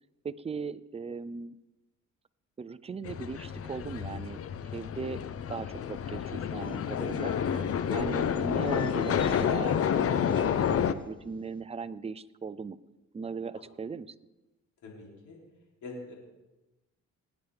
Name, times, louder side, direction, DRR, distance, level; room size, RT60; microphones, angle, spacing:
voice 1, 0.2-1.6 2.6-4.4 4.7-5.2 5.5-7.3 7.9-12.8 13.1-14.2, right 5 dB, 20° right, 15 dB, 0.5 m, -38 dB
sound 1, 3.0-10.9, left 8 dB, 50° left, 0.7 m, -29 dB
sound 2, 6.6-11.1 11.3-11.6, left 3 dB, 15° left, 1.1 m, -48 dB
voice 2, 7.9-8.2 14.8-15.4 15.8-16.1, left 3 dB, 80° left, -2 dB, 3.2 m, -39 dB
19.5 x 9.5 x 3.5 m, 1.0 s
cardioid pair, 90°, 30 cm